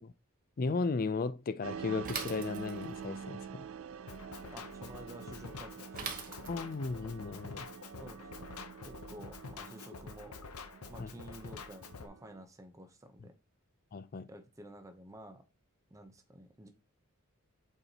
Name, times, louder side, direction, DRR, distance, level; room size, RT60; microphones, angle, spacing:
voice 1, 0.6-3.7 6.5-7.7 11.0-11.1 13.9-14.3, left 4 dB, 40° left, 0.4 m, -35 dB
sound 1, 1.6-12.4, right 6 dB, 65° right, 0.4 m, -47 dB
Bicycle / Mechanisms, 2.0-3.0 5.9-6.9, right 6 dB, 40° right, 1.1 m, -41 dB
Drum kit, 4.1-12.1, left 5 dB, 85° left, 0.8 m, -48 dB
voice 2, 4.5-6.2 8.0-8.5 8.8-10.3 10.9-13.3 14.3-15.4 15.9-16.7, right 1 dB, 15° right, 0.7 m, -51 dB
8.0 x 4.4 x 2.9 m
head